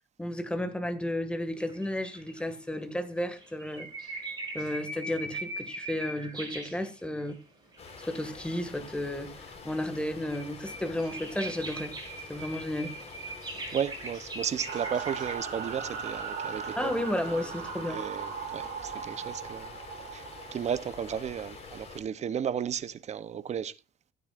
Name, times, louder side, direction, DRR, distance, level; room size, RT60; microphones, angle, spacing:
voice 1, 0.2-4.2 4.5-7.4 8.0-11.9 12.3-13.0 16.8-18.0, left 1 dB, 5° left, 1.9 m, -33 dB
sound 1, 1.5-2.6 3.2-7.4 7.7-8.3 9.1-15.3, right 2 dB, 25° right, 6.3 m, -41 dB
sound 2, 7.8-22.0, left 4 dB, 40° left, 4.1 m, -47 dB
voice 2, 13.7-16.9 17.9-19.7 20.1-20.2 20.5-23.7, right 8 dB, 40° right, 0.8 m, -34 dB
sound 3, 14.7-21.6, right 6 dB, 65° right, 5.6 m, -38 dB
15.0 x 9.4 x 2.5 m
cardioid pair, 110°, 17 cm